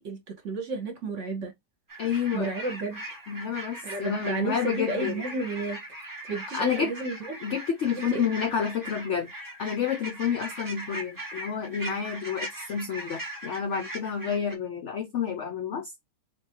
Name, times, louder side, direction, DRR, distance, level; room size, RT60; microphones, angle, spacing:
voice 1, 0.0-1.5 2.3-3.0 3.8-5.8 6.3-7.4 7.9-8.3, right 3 dB, 50° right, 1.1 m, -32 dB
sound 1, 1.9-14.5, right 1 dB, 30° right, 0.4 m, -40 dB
voice 2, 2.0-2.5 3.3-5.2 6.5-6.9 7.4-9.3 9.6-15.9, left 7 dB, 70° left, 0.6 m, -29 dB
3.4 x 3.3 x 2.9 m
omnidirectional pair, 1.8 m